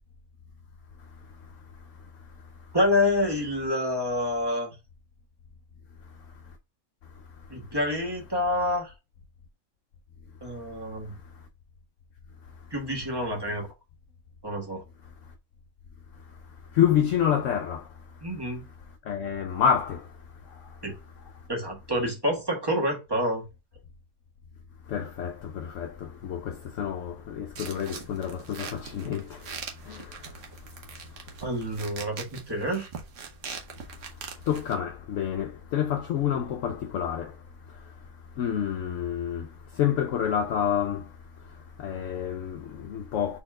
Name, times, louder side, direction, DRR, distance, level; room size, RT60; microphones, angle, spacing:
voice 1, 2.7-4.7 7.5-8.9 10.4-11.1 12.7-13.7 14.4-14.8 18.2-18.7 20.8-20.9 21.5-23.4 31.4-32.9, left 1 dB, 15° right, 1.4 m, -27 dB
voice 2, 16.7-17.9 19.1-20.1 24.9-29.5 29.9-30.2 34.5-37.3 38.4-39.5 39.7-41.1 41.8-43.4, left 9 dB, 65° left, 0.9 m, -28 dB
sound 1, 27.6-34.8, right 6 dB, 60° right, 1.2 m, -42 dB
4.2 x 3.5 x 3.6 m
omnidirectional pair, 1.5 m